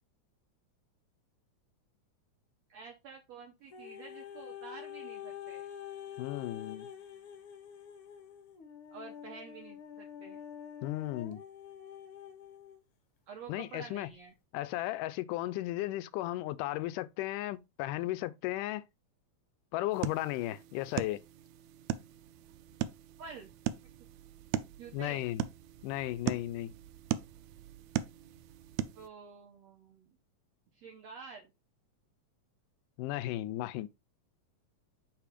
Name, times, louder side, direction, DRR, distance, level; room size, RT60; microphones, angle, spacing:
voice 1, 2.7-5.7 8.9-10.4 13.3-14.3 23.2-23.5 24.8-25.3 29.0-30.1 30.7-31.5, right 5 dB, 65° right, 1.8 m, -49 dB
sound 1, 3.7-12.8 13.5-13.6, left 9 dB, 65° left, 1.4 m, -47 dB
voice 2, 6.2-6.9 10.8-11.4 13.5-14.1 14.5-18.8 19.7-21.2 24.9-25.4 25.8-26.7 33.0-33.9, left 16 dB, 80° left, 2.1 m, -35 dB
sound 2, 19.9-29.1, right 12 dB, 90° right, 1.6 m, -39 dB
8.3 x 3.3 x 5.1 m
omnidirectional pair, 3.9 m